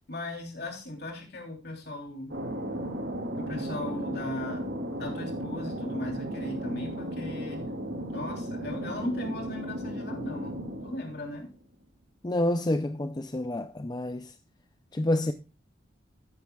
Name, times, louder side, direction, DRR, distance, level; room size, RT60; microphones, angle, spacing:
voice 1, 0.1-2.3 3.4-4.7 5.0-7.7 8.1-11.5, left 1 dB, 60° left, 3.3 m, -37 dB
Thunder, 2.3-11.6, equal, 75° right, 2.8 m, -35 dB
voice 2, 12.2-14.3 14.9-15.3, left 1 dB, 20° left, 0.5 m, -28 dB
13.5 x 10.5 x 2.3 m
head